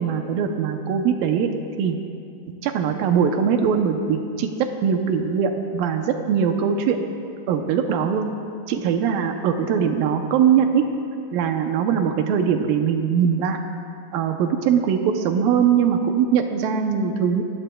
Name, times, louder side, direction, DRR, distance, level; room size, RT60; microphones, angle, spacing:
voice 1, 0.0-1.5 1.8-2.0 2.6-7.0 7.5-8.3 8.7-10.8 11.3-13.6 14.1-17.4, right 7 dB, 80° right, 5 dB, 2.0 m, -21 dB
24.0 x 17.0 x 2.3 m, 2.5 s
omnidirectional pair, 4.9 m